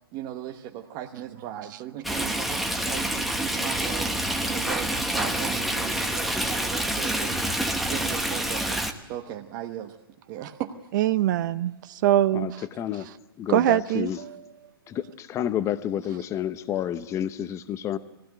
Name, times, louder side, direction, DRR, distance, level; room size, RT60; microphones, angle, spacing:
voice 1, 0.1-7.4 7.9-10.0 10.3-10.7, right 11 dB, 35° right, 3 dB, 1.1 m, -37 dB
Stream, 2.0-8.9, right 1 dB, ahead, 1.2 m, -27 dB
voice 2, 10.9-12.6 13.5-14.3, right 13 dB, 50° right, 14 dB, 0.6 m, -23 dB
voice 3, 12.3-13.1 13.4-14.2 14.9-18.0, left 10 dB, 25° left, 13 dB, 0.9 m, -30 dB
19.5 x 15.5 x 9.1 m, 0.98 s
hypercardioid pair, 130°, 13 cm